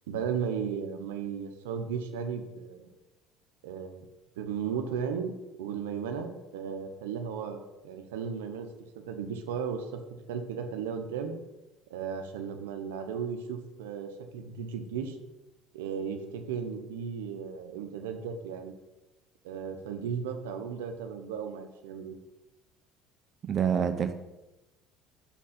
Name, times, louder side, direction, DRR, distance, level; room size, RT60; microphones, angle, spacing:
voice 1, 0.1-2.9 3.6-4.1 4.4-5.3 5.6-7.6 7.8-8.7 9.0-10.0 10.3-11.3 11.9-15.2 15.7-18.7 19.4-22.1, right 7 dB, 85° right, 6 dB, 0.7 m, -35 dB
voice 2, 23.4-24.2, right 7 dB, 40° right, 8 dB, 0.6 m, -27 dB
5.8 x 4.2 x 5.8 m, 1.0 s
supercardioid pair, 80°, 0 cm